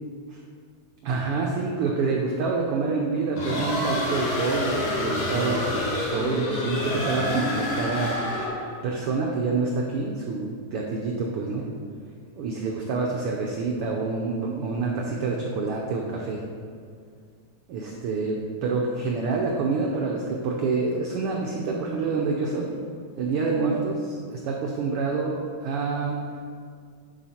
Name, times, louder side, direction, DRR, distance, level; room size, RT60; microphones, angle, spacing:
voice 1, 1.0-8.2 8.8-11.7 12.4-16.4 17.7-22.7 23.2-26.2, right 4 dB, 90° right, -1 dB, 1.2 m, -27 dB
sound 1, 3.3-8.7, left 1 dB, 65° left, 2.6 m, -28 dB
10.5 x 4.9 x 4.2 m, 2.2 s
omnidirectional pair, 3.4 m